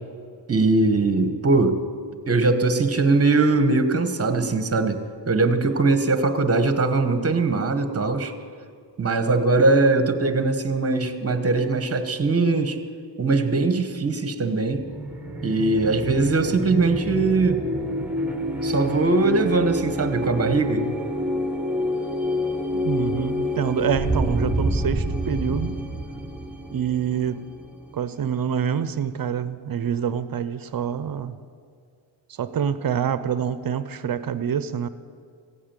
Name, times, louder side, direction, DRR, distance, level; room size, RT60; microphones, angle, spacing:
voice 1, 0.5-1.8 2.3-5.0 5.3-8.3 9.0-12.8 13.2-14.8 15.4-17.6 18.6-20.9, right 3 dB, 30° right, 9 dB, 1.3 m, -21 dB
sound 1, 14.8-28.2, equal, 5° right, 1.4 m, -28 dB
voice 2, 22.7-25.8 26.7-27.4 27.9-31.4 32.3-34.9, right 8 dB, 45° right, 13 dB, 0.6 m, -26 dB
16.0 x 8.6 x 8.9 m, 2.3 s
wide cardioid pair, 120°, 48 cm